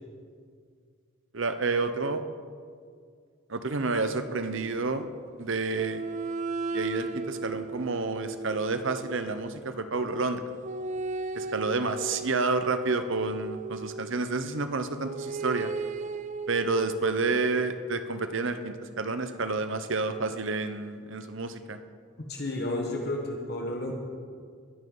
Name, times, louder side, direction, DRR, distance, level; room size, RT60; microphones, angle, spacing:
voice 1, 1.3-2.2 3.5-5.1 5.4-6.0 6.7-10.4 11.3-15.7 16.5-21.8, right 3 dB, 55° right, 9 dB, 0.8 m, -29 dB
sound 1, 3.7-5.1 5.7-9.6 10.6-14.3 15.0-17.0, right 3 dB, 30° right, 0.3 m, -36 dB
voice 2, 22.3-23.9, left 1 dB, 45° left, 1 dB, 1.4 m, -31 dB
21.5 x 11.0 x 3.9 m, 2.1 s
head